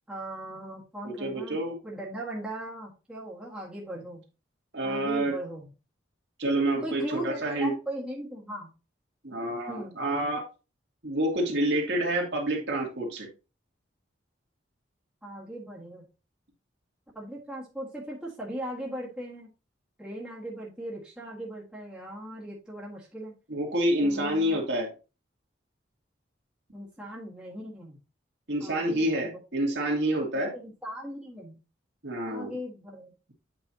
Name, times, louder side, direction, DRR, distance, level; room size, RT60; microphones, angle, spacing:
voice 1, 0.1-1.6 1.8-4.2 4.8-5.7 6.8-8.7 9.7-10.0 15.2-16.1 17.1-19.5 20.0-23.3 24.0-24.6 26.7-28.0 28.6-29.4 30.5-31.6 32.3-33.1, right 1 dB, 5° right, -5 dB, 1.7 m, -38 dB
voice 2, 1.0-1.7 4.7-5.3 6.4-7.7 9.2-10.4 11.0-13.3 23.5-24.9 28.5-30.5 32.0-32.5, right 1 dB, 65° right, 0 dB, 2.2 m, -28 dB
8.3 x 5.5 x 2.8 m, 0.31 s
head